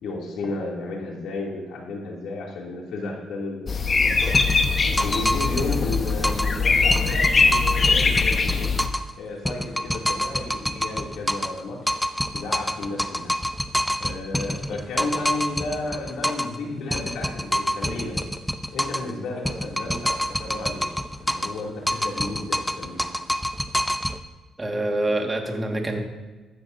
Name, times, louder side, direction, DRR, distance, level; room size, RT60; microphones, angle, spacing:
voice 1, 0.0-4.4 5.0-8.7 9.2-11.8 12.3-13.3 14.0-18.3 18.7-20.9 21.2-23.1, left 3 dB, 80° left, -2 dB, 2.6 m, -33 dB
sound 1, 3.7-8.9, left 4 dB, 40° left, 1.1 m, -21 dB
sound 2, 4.3-6.6 6.9-9.1 9.4-11.6 11.9-16.6 16.9-19.1 19.4-21.6 21.9-24.2, equal, 5° left, 0.6 m, -27 dB
voice 2, 24.6-26.0, right 1 dB, 20° right, 2 dB, 1.7 m, -26 dB
15.0 x 13.0 x 2.7 m, 1.2 s
cardioid pair, 90°, 0 cm